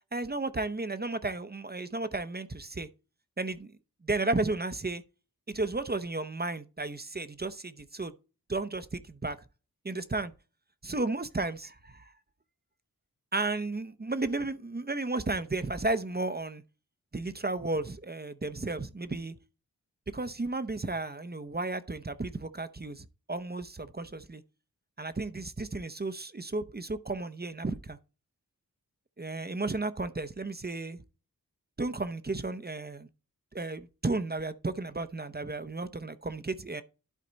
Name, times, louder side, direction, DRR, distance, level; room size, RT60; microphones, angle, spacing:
voice 1, 0.1-2.9 3.4-3.7 4.0-5.0 5.5-8.1 8.5-9.4 9.8-10.3 10.8-12.1 13.3-16.6 17.1-19.3 20.1-24.4 25.0-28.0 29.2-31.0 31.8-33.1 33.5-36.8, right 2 dB, 25° right, 0.7 m, -33 dB
12.0 x 4.2 x 4.0 m
wide cardioid pair, 45°, 36 cm